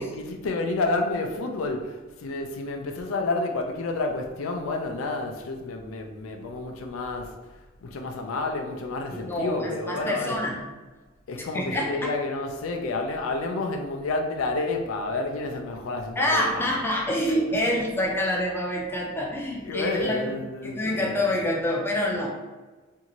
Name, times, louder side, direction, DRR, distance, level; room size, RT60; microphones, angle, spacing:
voice 1, 0.0-10.4 11.3-16.7 17.3-17.6 19.6-21.2, left 2 dB, 80° left, 3 dB, 0.4 m, -30 dB
voice 2, 9.1-10.6 11.5-12.1 16.2-20.3 20.6-22.3, left 1 dB, 10° left, -2 dB, 0.5 m, -26 dB
2.7 x 2.4 x 2.9 m, 1.3 s
head